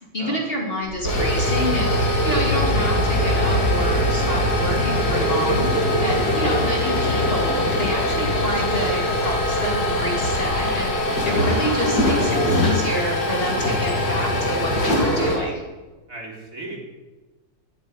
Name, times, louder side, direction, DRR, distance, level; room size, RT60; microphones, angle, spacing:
voice 1, 0.1-1.9 2.2-5.7 6.0-10.9 11.2-15.6, equal, 30° left, -1 dB, 2.7 m, -28 dB
sound 1, 0.8-15.4, left 1 dB, 55° left, 2.9 m, -21 dB
voice 2, 5.9-6.3 16.1-16.8, right 2 dB, 45° right, -2 dB, 3.6 m, -36 dB
13.0 x 8.4 x 9.8 m, 1.2 s
omnidirectional pair, 2.0 m